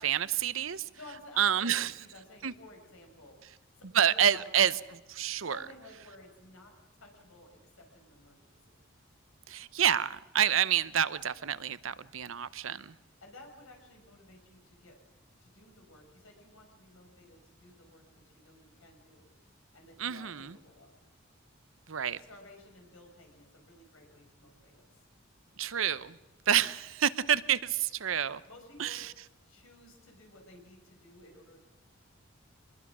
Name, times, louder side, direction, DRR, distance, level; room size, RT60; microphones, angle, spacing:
voice 1, 0.0-0.9 1.4-1.9 2.4-2.5 3.9-4.7 5.1-5.6 9.5-12.9 20.0-20.6 21.9-22.2 25.6-26.2 26.5-28.4 28.8-29.1, right 9 dB, 75° right, 16 dB, 0.8 m, -28 dB
voice 2, 0.7-4.5 5.5-7.5 7.8-8.8 13.2-15.0 15.4-20.9 22.2-24.9 28.5-29.1 29.4-31.6, left 1 dB, 80° left, 2 dB, 6.2 m, -54 dB
25.0 x 21.0 x 6.2 m, 1.1 s
head